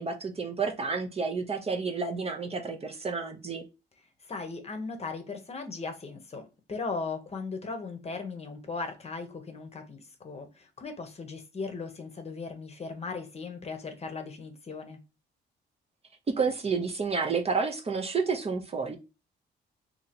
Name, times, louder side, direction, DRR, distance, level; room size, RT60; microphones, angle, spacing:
voice 1, 0.0-3.6 16.3-19.0, right 5 dB, 30° right, 0.6 m, -30 dB
voice 2, 4.2-15.0, left 4 dB, 30° left, 0.8 m, -38 dB
2.8 x 2.7 x 4.1 m
cardioid pair, 90°, 20 cm